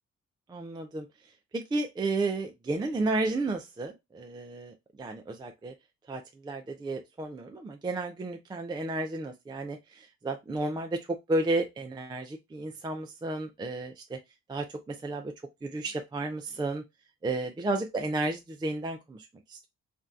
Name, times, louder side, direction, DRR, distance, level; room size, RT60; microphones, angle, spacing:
voice 1, 0.5-1.1 1.5-5.7 6.1-14.2 14.5-15.3 15.6-16.8 17.2-19.7, right 2 dB, 15° right, 0.4 m, -32 dB
3.4 x 2.3 x 2.6 m
cardioid pair, 90°, 30 cm